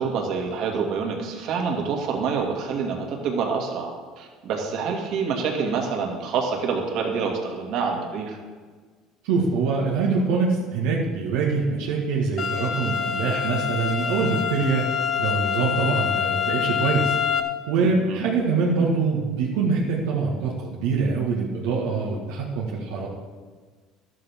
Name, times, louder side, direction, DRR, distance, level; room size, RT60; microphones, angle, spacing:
voice 1, 0.0-8.4 17.8-18.3, right 5 dB, 65° right, 1 dB, 2.2 m, -27 dB
voice 2, 9.2-14.9 15.2-17.1 17.7-23.1, right 4 dB, 90° right, -3 dB, 1.7 m, -24 dB
sound 1, 12.4-17.4, left 8 dB, 45° left, 1.1 m, -26 dB
12.0 x 12.0 x 3.6 m, 1.5 s
supercardioid pair, 110°, 0 cm